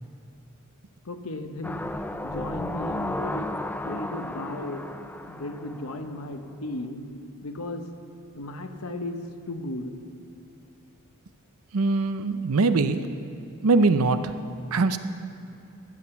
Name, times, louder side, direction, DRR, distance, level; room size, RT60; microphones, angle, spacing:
voice 1, 1.0-1.8 2.2-3.5 3.8-5.0 5.3-7.1 7.4-7.8 8.4-9.2 9.5-9.9, left 2 dB, 70° left, 7 dB, 0.9 m, -35 dB
sound 1, 1.6-6.5 6.9-7.0, left 1 dB, 10° left, 0.4 m, -34 dB
voice 2, 11.7-13.0 13.6-14.3 14.7-15.0, right 3 dB, 85° right, 11 dB, 0.6 m, -22 dB
12.0 x 8.3 x 6.9 m, 2.6 s
head